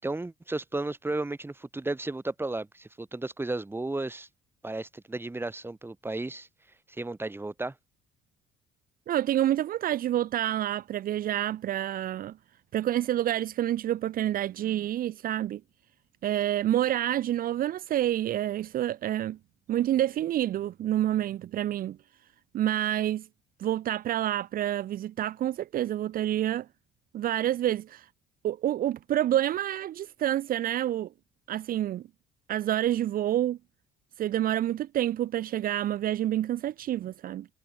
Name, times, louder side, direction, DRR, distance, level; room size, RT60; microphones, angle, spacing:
voice 1, 0.0-4.3 4.6-6.5 6.9-7.8, right 2 dB, 15° right, 6.9 m, -34 dB
voice 2, 9.1-12.3 12.7-15.6 16.2-19.4 19.7-22.0 22.5-23.2 23.6-26.7 27.1-28.1 28.4-31.1 31.5-32.0 32.5-33.6 34.2-37.5, right 12 dB, 60° right, 1.0 m, -28 dB
cardioid pair, 110°, 17 cm